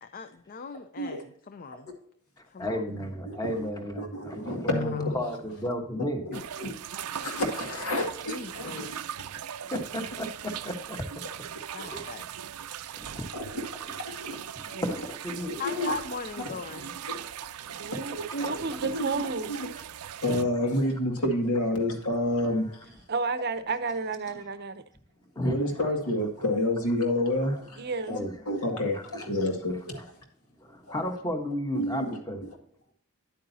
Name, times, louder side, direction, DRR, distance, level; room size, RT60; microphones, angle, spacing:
voice 1, 0.0-1.9 2.4-2.8 4.7-5.2 6.3-6.4 8.3-8.9 11.7-12.3 15.6-16.9, left 5 dB, 40° left, 10 dB, 0.5 m, -39 dB
voice 2, 2.6-6.3 6.6-6.7 8.7-8.8 9.7-9.8 10.2-11.0 11.9-12.0 13.0-13.3 14.1-14.2 14.5-15.6 16.8-17.0 18.4-18.5 18.8-18.9 19.7-19.8 20.3-20.5 22.1-22.2 25.4-25.9 27.4-27.6 28.1-28.4 28.9-29.3 30.6-32.4, equal, 15° left, 4 dB, 1.2 m, -34 dB
voice 3, 4.0-5.1 6.3-9.0 13.3-14.4 15.4-16.0 17.1-17.2 18.1-19.6 20.2-22.9 25.4-28.2 28.5-30.1 30.9-31.0 31.7-32.2, left 1 dB, 80° left, 3 dB, 2.1 m, -30 dB
sound 1, 6.3-20.4, right 10 dB, 85° right, 0.5 m, -39 dB
voice 4, 17.6-19.5 23.1-24.8 27.8-28.1, right 4 dB, 45° right, 12 dB, 0.6 m, -32 dB
10.0 x 8.7 x 2.7 m, 0.63 s
head